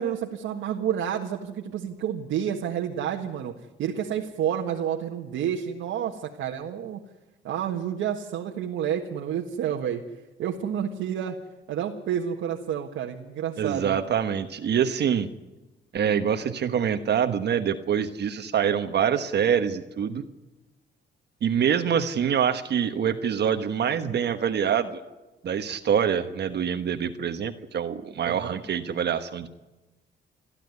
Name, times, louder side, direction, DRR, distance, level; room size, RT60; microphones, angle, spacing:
voice 1, 0.0-3.5 3.8-7.0 7.4-10.0 10.4-11.3 11.7-14.0 28.2-28.6, right 9 dB, 85° right, 0 dB, 1.6 m, -29 dB
voice 2, 13.6-15.3 15.9-20.2 21.4-25.0 25.4-29.5, right 8 dB, 60° right, 7 dB, 1.2 m, -25 dB
29.5 x 12.0 x 9.6 m, 1.1 s
cardioid pair, 90°, 20 cm